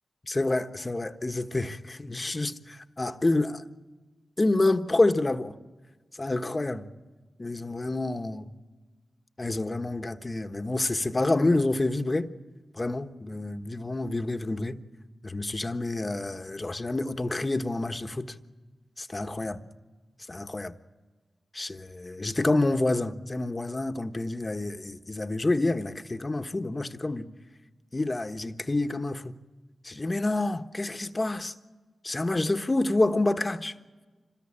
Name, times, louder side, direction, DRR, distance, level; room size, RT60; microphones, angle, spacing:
voice 1, 0.2-3.6 4.4-5.5 6.2-6.9 7.4-8.5 9.4-12.3 12.7-14.8 15.2-18.4 19.0-19.7 20.3-20.7 21.5-27.3 27.9-29.4 29.8-31.5 32.0-33.7, left 2 dB, 35° left, 1.3 m, -28 dB
26.5 x 20.5 x 8.8 m
cardioid pair, 50°, 0 cm